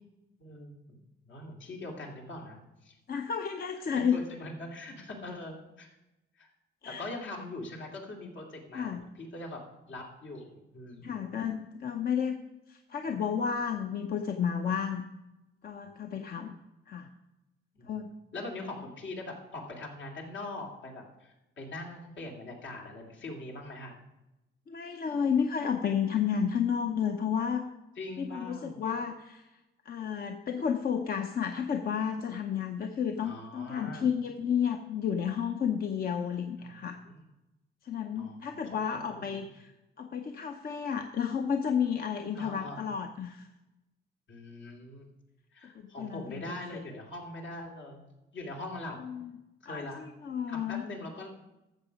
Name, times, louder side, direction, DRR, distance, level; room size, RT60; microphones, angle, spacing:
voice 1, 0.4-1.0 1.3-3.0 4.0-5.9 6.3-6.5 6.8-9.6 9.9-11.2 17.7-23.9 28.0-28.8 33.2-34.1 36.6-36.7 37.1-37.2 38.1-39.5 42.3-43.0 44.3-45.0 45.5-48.1 48.3-49.0 49.6-50.1 50.5-51.3, left 2 dB, 70° left, 0 dB, 2.7 m, -42 dB
voice 2, 3.1-4.2 6.8-7.0 8.7-9.0 11.0-12.3 12.7-15.0 15.6-16.6 16.9-17.1 17.8-18.1 24.7-27.7 28.2-29.5 29.8-37.0 37.8-43.5 45.7-46.4 49.0-49.3 49.6-50.8, left 7 dB, 50° left, 5 dB, 0.8 m, -31 dB
13.5 x 7.2 x 5.2 m, 0.99 s
cardioid pair, 90°, 20 cm